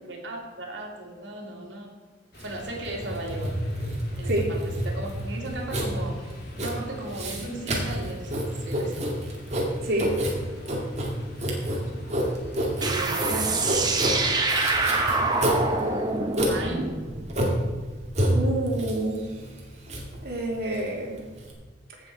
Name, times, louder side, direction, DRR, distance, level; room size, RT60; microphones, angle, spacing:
voice 1, 0.1-2.0 2.4-3.6 4.2-6.3 6.6-9.0 12.9-14.6 16.5-16.9, right 2 dB, 75° right, 0 dB, 2.5 m, -37 dB
sound 1, 2.3-13.7, left 1 dB, 55° left, 2.5 m, -44 dB
Writing, 2.4-21.5, equal, 35° right, 2.3 m, -29 dB
sound 2, 12.8-18.1, right 3 dB, 20° right, 1.2 m, -26 dB
voice 2, 18.3-19.2 20.2-21.2, right 1 dB, 55° right, -1 dB, 2.7 m, -28 dB
16.5 x 6.6 x 4.6 m, 1.4 s
head